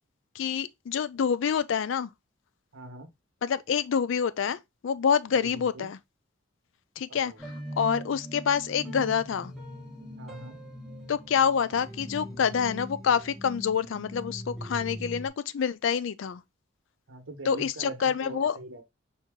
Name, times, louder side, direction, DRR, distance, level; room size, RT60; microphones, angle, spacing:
voice 1, 0.4-2.1 3.4-6.0 7.0-7.3 7.8-9.5 11.1-16.4 17.5-18.6, left 7 dB, 70° left, 0.4 m, -27 dB
voice 2, 2.7-3.1 5.4-5.9 7.1-7.4 10.2-10.6 17.1-18.8, right 2 dB, 75° right, 1.2 m, -43 dB
sound 1, 7.4-15.3, equal, ahead, 1.4 m, -41 dB
4.5 x 2.9 x 3.6 m
head